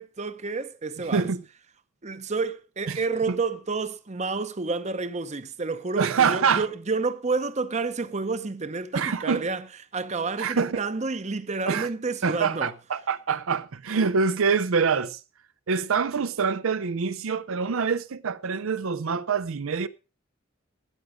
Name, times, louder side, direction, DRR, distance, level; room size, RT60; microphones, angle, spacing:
voice 1, 0.0-1.3 2.0-9.6 9.9-12.7, right 4 dB, 35° right, 0.8 m, -29 dB
voice 2, 1.1-1.4 2.9-3.0 3.3-3.4 6.0-6.7 8.9-9.4 10.4-10.8 11.6-11.9 12.2-15.2 15.7-19.9, right 5 dB, 80° right, 0.6 m, -25 dB
13.0 x 9.5 x 5.0 m
head